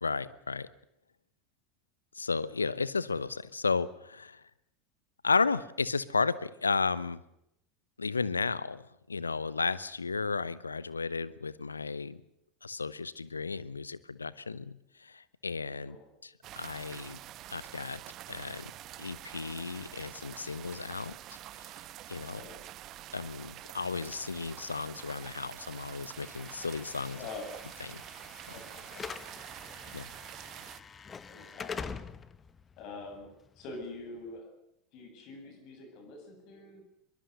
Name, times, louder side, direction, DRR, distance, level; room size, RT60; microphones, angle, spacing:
voice 1, 0.0-0.7 2.1-4.4 5.2-7.2 8.0-12.2 12.6-16.0 16.2-17.2 17.5-18.0 18.3-18.7 19.0-21.7 22.1-22.4 23.1-27.3 27.8-28.0 29.9-30.1, left 4 dB, 85° left, 19 dB, 0.9 m, -33 dB
sound 1, 16.4-30.8, right 14 dB, 45° right, 1.0 m, -47 dB
voice 2, 22.3-22.7 27.2-27.5 28.5-29.0 29.5-29.6 31.3-32.0 32.8-33.3 33.6-34.5 34.9-36.8, left 3 dB, 50° left, 5 dB, 7.6 m, -45 dB
Slam / Alarm, 26.2-34.3, left 5 dB, 25° left, 1.3 m, -45 dB
23.0 x 22.5 x 6.8 m, 0.80 s
figure-of-eight pair, 80°, 0 cm